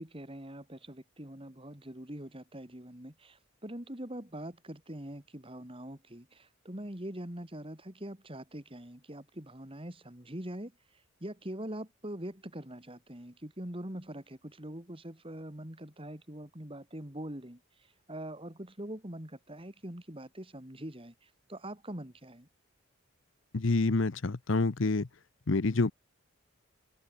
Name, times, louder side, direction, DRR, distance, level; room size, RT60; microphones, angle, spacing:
voice 1, 0.0-10.7 11.2-22.5, right 1 dB, 25° right, 2.8 m, -43 dB
voice 2, 23.5-25.1 25.5-25.9, left 3 dB, 65° left, 0.8 m, -27 dB
head